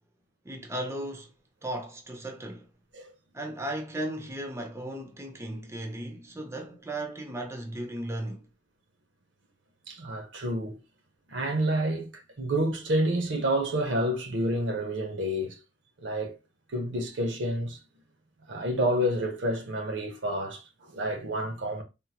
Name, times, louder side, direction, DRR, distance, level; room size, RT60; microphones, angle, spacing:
voice 1, 0.4-1.3 1.6-2.7 3.3-8.5, right 1 dB, 15° right, 0.4 m, -36 dB
voice 2, 9.9-10.8 11.3-15.6 16.0-16.4 16.7-17.8 18.5-21.8, right 1 dB, 80° right, 0.8 m, -29 dB
3.6 x 2.1 x 2.8 m
head